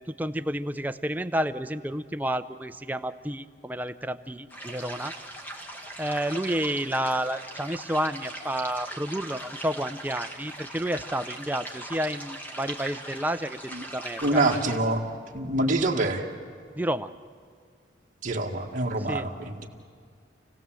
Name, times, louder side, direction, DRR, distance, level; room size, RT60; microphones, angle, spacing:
voice 1, 0.0-5.1 6.0-14.6 16.7-17.1 19.0-19.3, right 1 dB, 10° right, 9 dB, 0.5 m, -30 dB
sound 1, 4.5-14.8, right 1 dB, 10° left, 1.6 m, -40 dB
voice 2, 14.2-15.0 15.3-16.2 18.2-19.7, right 2 dB, 45° right, 0 dB, 1.8 m, -26 dB
28.0 x 17.0 x 7.6 m, 2.1 s
head